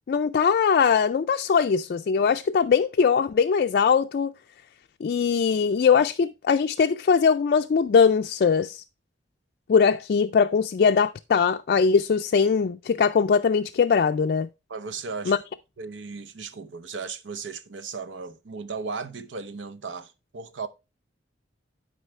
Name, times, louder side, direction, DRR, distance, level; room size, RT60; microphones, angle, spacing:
voice 1, 0.1-4.3 5.0-8.8 9.7-14.5 15.3-15.4, left 6 dB, 55° left, 0.3 m, -21 dB
voice 2, 14.7-15.4 15.8-20.7, right 4 dB, 90° right, 0.8 m, -36 dB
11.5 x 5.0 x 3.2 m
head